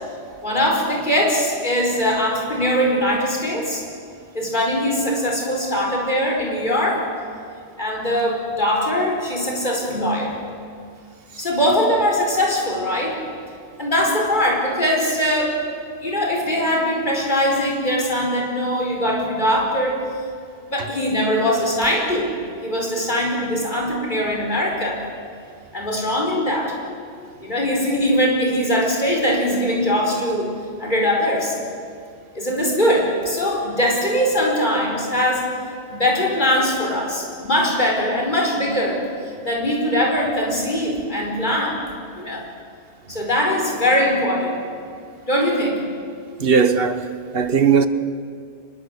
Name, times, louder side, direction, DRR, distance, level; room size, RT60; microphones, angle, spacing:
voice 1, 0.4-3.8 4.3-7.1 7.8-10.4 11.4-13.2 13.8-15.6 16.0-20.1 20.7-22.3 22.6-25.0 25.7-26.7 27.4-31.6 32.3-35.5 35.9-39.0 39.4-41.8 42.1-42.5 43.1-44.6 45.3-45.8, equal, 45° left, 5.0 m, -21 dB
voice 2, 46.4-47.9, right 6 dB, 60° right, 1.4 m, -18 dB
24.5 x 21.5 x 8.4 m
omnidirectional pair, 1.1 m